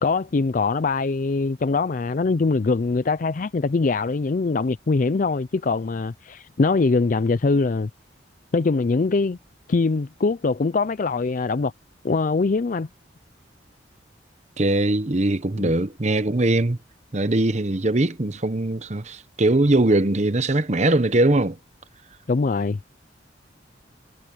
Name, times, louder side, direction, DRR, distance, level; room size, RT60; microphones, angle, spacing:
voice 1, 0.0-7.9 8.5-9.4 9.7-11.7 12.0-12.9 15.6-15.7 22.3-22.8, left 3 dB, 45° left, 0.4 m, -22 dB
voice 2, 14.6-16.8 17.1-21.6, right 2 dB, 40° right, 1.0 m, -21 dB
head